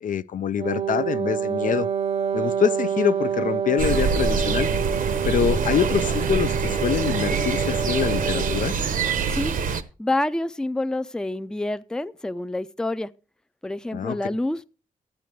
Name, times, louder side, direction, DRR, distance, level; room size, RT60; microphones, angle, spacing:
voice 1, 0.0-1.9 2.3-4.7 5.2-8.8 13.9-14.2, left 8 dB, 70° left, 0.5 m, -25 dB
Wind instrument woodwind instrument, 0.6-8.7, right 7 dB, 50° right, 0.7 m, -27 dB
sound 1, 3.8-9.8, right 5 dB, 70° right, 0.9 m, -25 dB
voice 2, 10.0-13.1 13.6-14.7, left 2 dB, 5° left, 0.4 m, -27 dB
13.5 x 9.2 x 3.1 m
wide cardioid pair, 170°, 14 cm